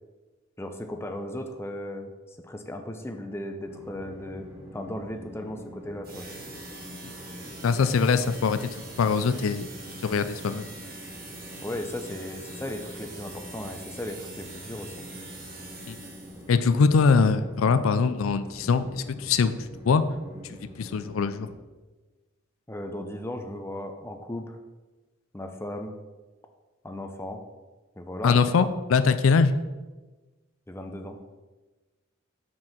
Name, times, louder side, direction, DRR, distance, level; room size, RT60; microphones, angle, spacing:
voice 1, 0.6-4.5 4.7-6.3 8.2-8.3 11.6-15.1 22.7-24.6 25.3-26.0 26.8-27.4 28.0-28.7 30.7-31.2, left 1 dB, 10° left, 5 dB, 0.6 m, -36 dB
Train, 3.7-21.5, left 1 dB, 15° right, 1.1 m, -45 dB
sound 1, 6.0-16.6, right 3 dB, 50° right, 1.5 m, -44 dB
voice 2, 7.6-8.7 9.0-9.7 10.0-10.7 15.9-16.0 16.5-19.5 19.9-20.0 20.8-21.5 28.2-29.5, left 5 dB, 85° left, 12 dB, 0.4 m, -22 dB
6.2 x 4.6 x 5.8 m, 1.2 s
head